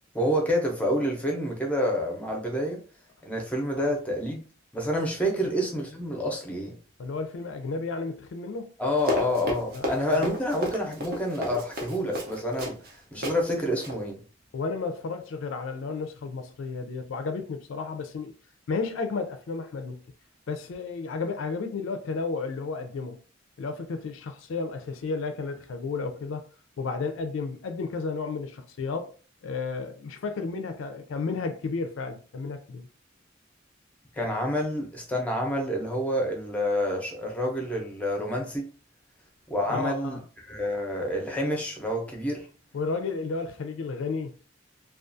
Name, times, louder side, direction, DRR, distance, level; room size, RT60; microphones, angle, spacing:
voice 1, 0.1-2.8 3.2-4.4 4.7-6.8 8.8-12.7 13.1-14.2 34.1-38.7 39.5-40.2 40.5-42.5, equal, 5° left, 0.6 m, -28 dB
voice 2, 7.0-8.7 9.7-9.9 10.1-10.3 14.5-18.4 18.7-20.0 20.5-23.2 23.6-26.4 26.8-29.1 29.4-32.9 39.7-40.2 42.7-44.3, left 4 dB, 75° left, 0.4 m, -32 dB
Run, 9.0-12.9 13.2-13.4 13.7-14.0, equal, 55° right, 0.6 m, -33 dB
2.3 x 2.3 x 2.6 m
head